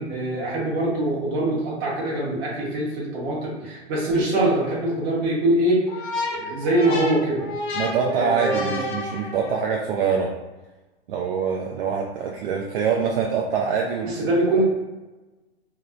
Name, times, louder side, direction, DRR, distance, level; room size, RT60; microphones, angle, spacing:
voice 1, 0.0-5.8 6.4-7.5 8.0-8.8 14.1-14.6, right 1 dB, 35° right, -6 dB, 1.1 m, -23 dB
sound 1, 5.9-9.8, left 3 dB, 50° left, 0.7 m, -31 dB
voice 2, 7.7-10.3 11.1-14.3, right 6 dB, 60° right, -1 dB, 0.4 m, -24 dB
2.9 x 2.0 x 2.4 m, 1.2 s
hypercardioid pair, 140°, 33 cm